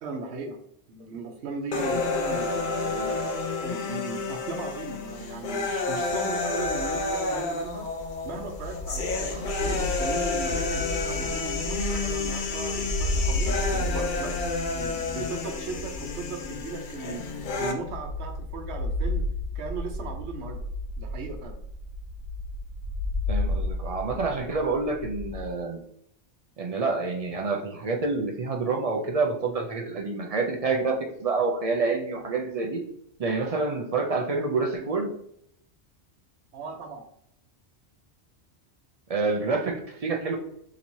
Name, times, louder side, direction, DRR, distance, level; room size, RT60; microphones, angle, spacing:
voice 1, 0.0-0.6 0.9-7.9 8.2-14.3 14.7-20.6 21.0-21.6 36.5-37.0, right 4 dB, 80° right, 4 dB, 1.0 m, -37 dB
sound 1, 1.7-17.7, left 3 dB, 55° left, 0.6 m, -30 dB
sound 2, 6.4-25.5, left 1 dB, 75° left, 1.0 m, -33 dB
voice 2, 23.3-25.8 26.6-32.8 33.2-35.1 39.1-40.4, right 3 dB, 50° right, 3 dB, 0.4 m, -27 dB
4.4 x 3.0 x 2.7 m, 0.71 s
omnidirectional pair, 1.1 m